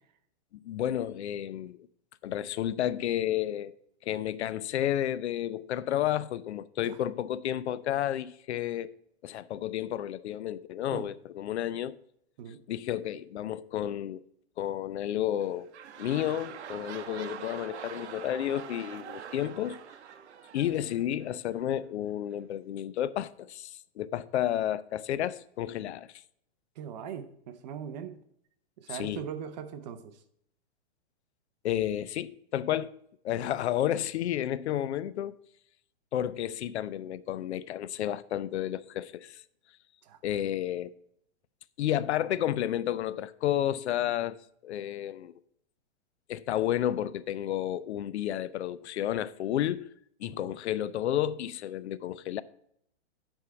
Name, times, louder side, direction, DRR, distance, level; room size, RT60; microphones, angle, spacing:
voice 1, 0.5-1.9 2.2-3.7 4.0-8.9 9.2-12.0 12.7-14.2 14.6-15.7 16.0-19.8 20.5-26.1 28.9-29.2 31.6-33.0 33.2-35.4 36.1-39.4 40.2-40.9 41.8-45.3 46.3-49.9 50.2-52.4, left 11 dB, 75° left, 0.5 m, -31 dB
sound 1, 15.3-21.6 22.3-22.4, right 8 dB, 85° right, 0.8 m, -44 dB
voice 2, 26.8-28.2 28.8-30.2 33.3-33.5 40.0-40.2 44.0-44.2 50.2-50.5, right 8 dB, 40° right, 0.7 m, -41 dB
9.7 x 3.7 x 5.6 m
hypercardioid pair, 155°, 33 cm